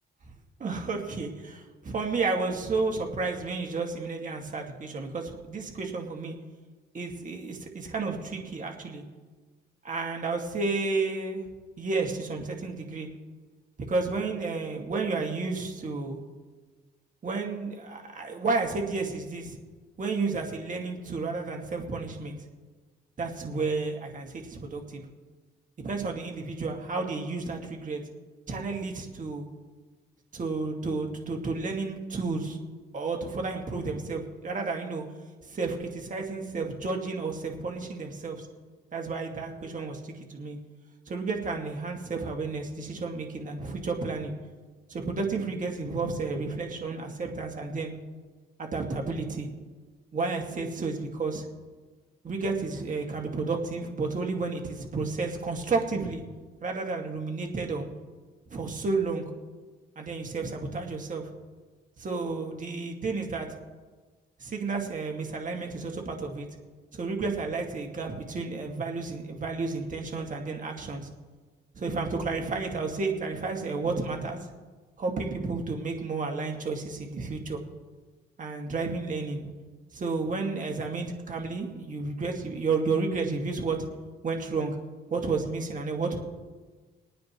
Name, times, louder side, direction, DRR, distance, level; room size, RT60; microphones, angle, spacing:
voice 1, 0.6-6.4 6.9-9.0 9.8-11.4 11.8-13.1 13.9-16.2 17.2-19.6 20.0-22.4 23.2-25.1 25.8-28.0 28.5-29.5 30.3-32.6 32.9-35.0 35.4-38.5 38.9-40.6 41.1-44.4 44.9-47.9 48.6-49.5 50.1-51.4 52.2-56.2 56.6-57.9 58.5-59.2 60.0-61.3 62.0-63.5 64.4-66.5 66.9-71.1 71.7-74.5 75.0-77.6 78.4-79.5 79.9-83.8 84.2-84.8 85.1-86.2, right 3 dB, 40° right, 1 dB, 2.1 m, -31 dB
22.5 x 9.4 x 3.1 m, 1.4 s
cardioid pair, 90°, 20 cm